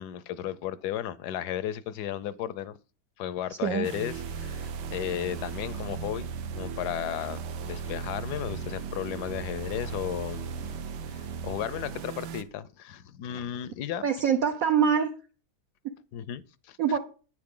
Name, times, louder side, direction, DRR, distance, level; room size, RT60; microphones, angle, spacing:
voice 1, 0.0-2.8 3.2-6.3 6.5-10.7 11.1-14.1 16.1-17.0, left 11 dB, 75° left, 1.2 m, -34 dB
voice 2, 3.5-3.9 14.0-15.1 15.8-15.9 16.8-17.0, right 7 dB, 60° right, 1.2 m, -24 dB
sound 1, 3.8-12.4, right 6 dB, 85° right, 1.5 m, -36 dB
9.6 x 9.2 x 3.7 m
omnidirectional pair, 1.8 m